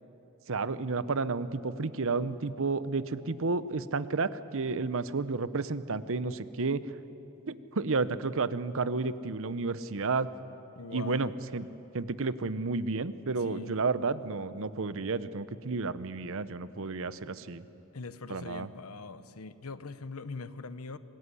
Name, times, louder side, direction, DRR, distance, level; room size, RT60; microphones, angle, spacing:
voice 1, 0.5-6.8 7.5-10.3 10.9-11.7 11.9-17.6 18.3-18.7, right 4 dB, 65° right, 14 dB, 0.8 m, -31 dB
voice 2, 10.7-11.4 13.4-13.8 17.9-21.0, left 3 dB, 80° left, 13 dB, 1.0 m, -42 dB
24.5 x 19.5 x 9.9 m, 3.0 s
head